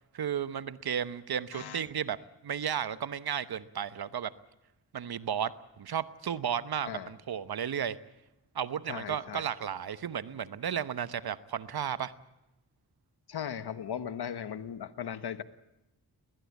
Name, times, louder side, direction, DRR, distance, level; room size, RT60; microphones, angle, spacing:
voice 1, 0.1-2.2 2.4-4.3 4.9-8.0 8.5-12.1, right 8 dB, 70° right, 14 dB, 1.0 m, -33 dB
voice 2, 1.5-1.8 6.8-7.1 8.9-9.4 13.3-15.4, left 8 dB, 75° left, 12 dB, 1.2 m, -37 dB
20.5 x 19.5 x 8.3 m, 0.94 s
cardioid pair, 45°, 39 cm